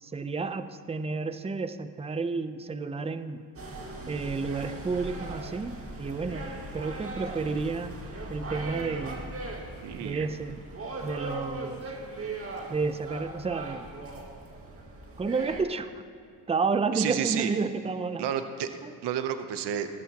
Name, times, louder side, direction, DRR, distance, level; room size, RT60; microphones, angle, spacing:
voice 1, 0.0-3.5 4.1-7.9 8.3-9.2 10.0-10.6 11.0-11.8 12.7-13.9 15.2-16.0 16.5-18.3 18.8-18.9, right 4 dB, 15° right, 12 dB, 0.6 m, -31 dB
sound 1, 3.6-15.6, right 2 dB, 35° right, 1.9 m, -39 dB
voice 2, 9.8-10.3 16.9-17.5 18.2-18.7 19.0-20.0, right 9 dB, 70° right, 9 dB, 0.9 m, -31 dB
18.5 x 13.5 x 2.9 m, 2.5 s
cardioid pair, 90°, 42 cm